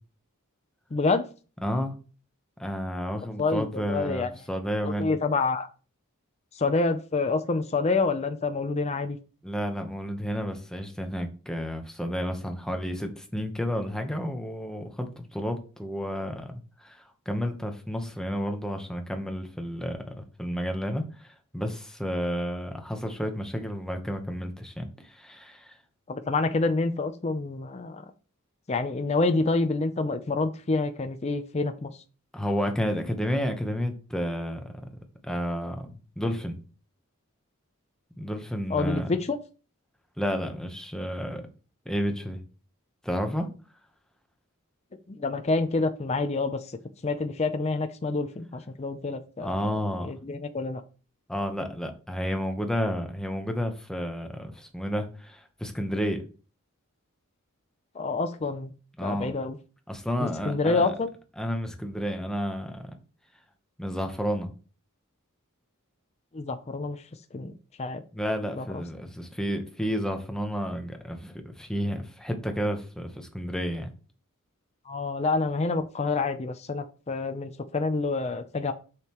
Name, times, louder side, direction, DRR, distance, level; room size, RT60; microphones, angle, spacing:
voice 1, 0.9-1.2 3.4-4.3 4.8-5.7 6.6-9.2 26.1-28.0 28.7-31.9 38.7-39.4 45.1-46.6 47.0-49.7 50.0-50.8 58.0-58.7 59.0-59.6 60.2-61.1 66.3-67.0 67.3-67.5 67.8-68.0 68.6-68.7 74.9-78.7, left 3 dB, 30° left, 8 dB, 0.5 m, -27 dB
voice 2, 1.6-1.9 2.6-5.1 9.4-16.5 16.8-25.7 32.3-34.6 35.2-36.6 38.2-39.1 40.2-41.4 41.9-42.4 43.0-43.5 49.4-50.1 51.3-56.2 59.0-59.3 59.9-60.9 61.4-62.9 63.8-64.5 68.1-73.9, equal, 5° left, 5 dB, 0.9 m, -31 dB
6.5 x 6.4 x 3.0 m, 0.36 s
head